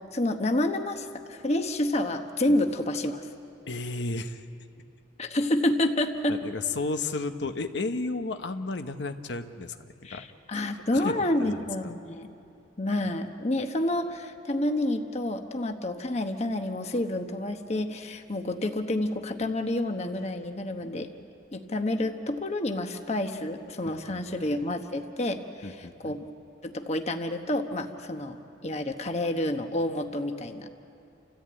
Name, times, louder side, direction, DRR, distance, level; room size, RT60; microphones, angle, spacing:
voice 1, 0.1-3.2 5.2-6.4 10.0-12.3 12.8-21.1 21.5-26.3 26.6-28.4 28.6-30.7, left 1 dB, 35° left, 6 dB, 1.1 m, -29 dB
voice 2, 3.7-4.4 6.3-10.2 10.5-10.6 10.9-11.9 23.9-24.6 25.6-26.1, left 3 dB, 75° left, 8 dB, 0.9 m, -33 dB
29.5 x 14.5 x 8.8 m, 2.8 s
head